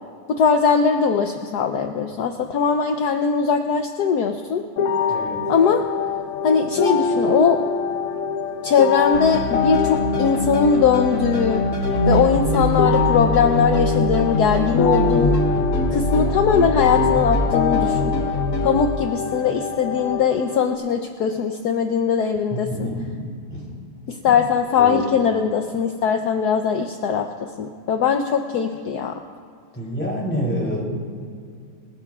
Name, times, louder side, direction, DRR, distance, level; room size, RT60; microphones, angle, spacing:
voice 1, 0.3-4.6 5.5-5.8 6.4-7.6 8.6-11.6 12.1-15.3 15.9-18.1 18.6-22.9 24.1-29.2, left 6 dB, 65° left, 4 dB, 1.0 m, -20 dB
sound 1, 4.8-20.8, left 5 dB, 85° left, 1.9 m, -25 dB
voice 2, 5.1-5.5 22.5-23.7 24.8-25.0 29.7-30.8, equal, 5° left, -3 dB, 3.2 m, -27 dB
sound 2, 9.1-18.7, left 1 dB, 40° left, 3.4 m, -23 dB
27.0 x 16.0 x 2.4 m, 2.4 s
omnidirectional pair, 2.4 m